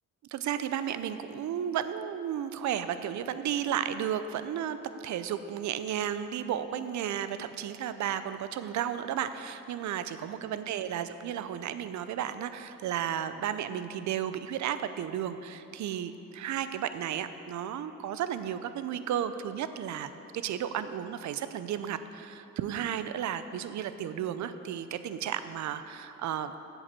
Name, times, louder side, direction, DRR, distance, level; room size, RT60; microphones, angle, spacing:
voice 1, 0.3-4.8 5.0-26.5, right 9 dB, 70° right, 12 dB, 0.6 m, -33 dB
8.1 x 8.0 x 7.5 m, 2.9 s
cardioid pair, 90°, 30 cm